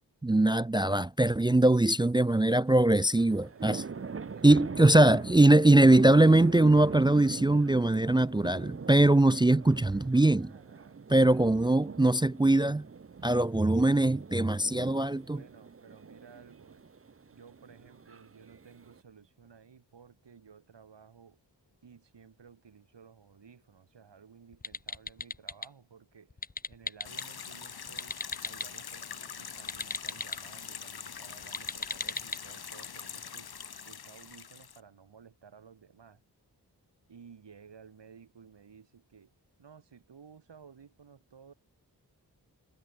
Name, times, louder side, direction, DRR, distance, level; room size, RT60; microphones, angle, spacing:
voice 1, 0.2-3.8 4.4-10.5 11.1-12.8 13.2-15.4, right 2 dB, 10° right, 0.4 m, -22 dB
sound 1, 2.7-19.0, right 5 dB, 35° right, 0.8 m, -42 dB
voice 2, 3.2-5.5 10.4-11.0 15.3-16.8 17.3-21.4 21.8-26.4 26.7-33.5 33.8-36.2 37.1-39.3 39.6-41.5, right 6 dB, 85° right, 2.9 m, -55 dB
sound 2, 24.5-25.7 26.3-27.2 27.9-28.7 29.6-30.4 31.4-32.4, left 3 dB, 20° left, 0.8 m, -37 dB
sound 3, 27.0-34.8, left 7 dB, 65° left, 1.2 m, -43 dB
cardioid pair, 50°, 41 cm